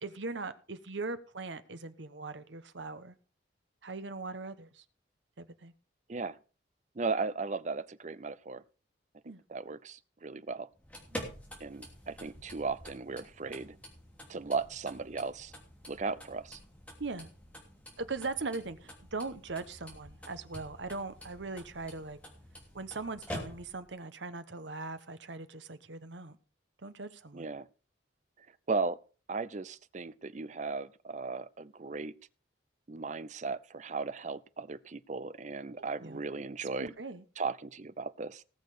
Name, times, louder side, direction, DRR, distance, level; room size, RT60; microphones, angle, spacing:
voice 1, 0.0-3.1 3.8-4.8 5.4-5.7 9.2-9.4 11.1-11.3 17.0-17.3 18.0-22.2 22.7-26.4 26.8-27.5 35.8-36.2 36.6-37.2, right 3 dB, 75° right, 1.1 m, -40 dB
voice 2, 7.0-8.6 9.5-10.7 11.6-13.8 14.3-15.5 15.9-16.6 27.3-27.7 28.7-29.0 29.3-32.1 32.9-36.9 37.4-38.4, right 4 dB, 40° right, 0.6 m, -36 dB
sound 1, 10.7-23.9, equal, 5° left, 3.0 m, -48 dB
18.5 x 6.6 x 5.0 m
head